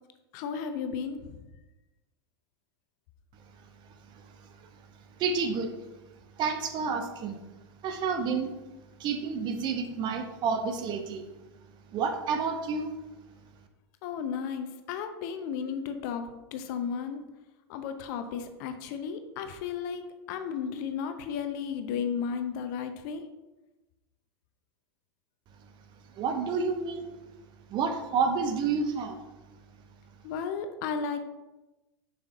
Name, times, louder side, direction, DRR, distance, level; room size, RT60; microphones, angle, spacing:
voice 1, 0.3-1.2 14.0-17.2 17.7-23.2 30.2-31.2, left 6 dB, 45° left, 8 dB, 0.6 m, -34 dB
voice 2, 5.2-5.7 6.4-7.4 7.8-8.5 9.0-11.3 11.9-12.9 26.2-27.1 27.7-29.2, right 5 dB, 35° right, 6 dB, 0.7 m, -29 dB
6.8 x 5.7 x 2.7 m, 1.1 s
figure-of-eight pair, 85°, 13 cm